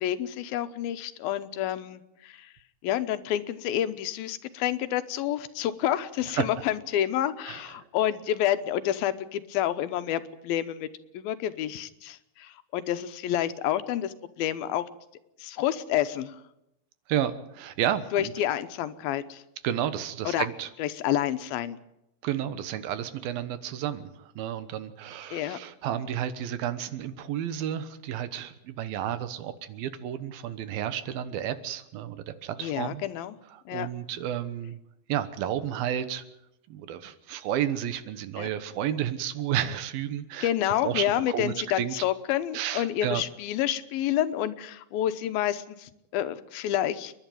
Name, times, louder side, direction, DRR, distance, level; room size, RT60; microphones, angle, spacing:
voice 1, 0.0-2.5 2.8-10.9 11.1-14.8 15.4-16.4 18.1-19.4 20.3-20.5 20.8-21.8 25.3-25.6 32.6-33.4 33.7-33.9 38.4-38.5 40.4-47.1, left 11 dB, 90° left, 12 dB, 2.8 m, -29 dB
voice 2, 7.5-7.9 17.1-18.3 19.6-20.7 22.2-33.0 33.5-34.8 35.1-36.2 36.7-40.5 40.8-41.9 42.5-43.2, right 10 dB, 85° right, 12 dB, 3.0 m, -31 dB
29.0 x 11.0 x 9.2 m, 0.86 s
omnidirectional pair, 4.1 m